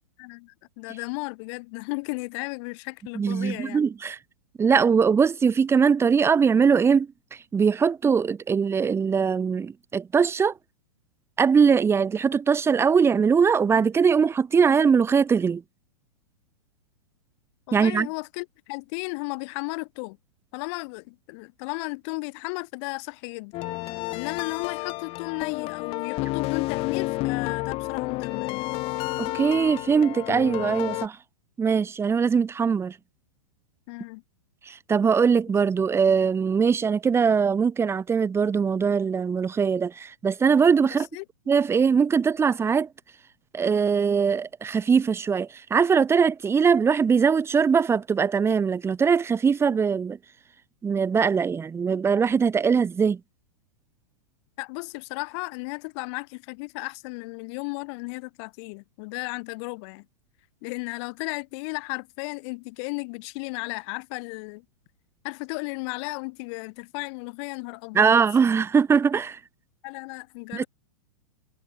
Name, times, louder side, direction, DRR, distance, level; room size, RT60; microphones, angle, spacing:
voice 1, 0.2-3.8 17.7-20.2 20.5-23.6 24.1-28.7 33.9-34.2 35.5-35.6 40.8-41.3 54.6-60.1 60.6-64.7 65.2-68.2 69.8-70.7, left 30 dB, 50° left, 3.7 m, -34 dB
voice 2, 3.2-4.2 4.6-7.1 7.5-10.5 11.4-15.6 17.7-18.1 29.2-31.2 31.6-33.0 34.7-41.1 41.5-42.9 43.5-50.2 50.8-53.2 67.9-69.4 70.5-70.6, right 6 dB, 15° right, 0.8 m, -21 dB
sound 1, 23.5-31.1, left 21 dB, 30° left, 0.4 m, -30 dB
hypercardioid pair, 120°, 19 cm